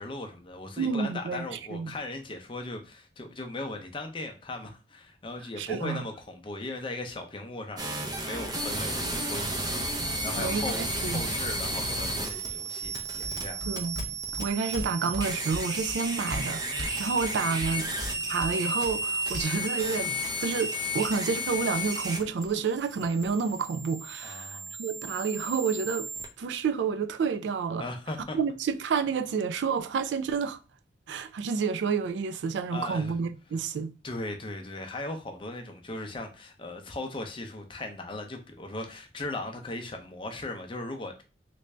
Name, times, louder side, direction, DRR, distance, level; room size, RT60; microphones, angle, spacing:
voice 1, 0.0-13.6 17.1-17.2 24.2-24.7 27.8-28.4 32.7-33.1 34.0-41.2, left 2 dB, 30° left, 0.5 m, -38 dB
voice 2, 0.8-1.9 5.6-6.0 10.4-11.2 13.7-17.9 18.3-26.1 26.4-27.9 28.3-30.6 31.1-33.9, right 5 dB, 75° right, 0.3 m, -30 dB
sound 1, 7.8-26.3, right 1 dB, 20° right, 0.5 m, -33 dB
sound 2, 12.8-19.4, left 2 dB, 60° left, 0.9 m, -41 dB
3.2 x 2.5 x 3.2 m
head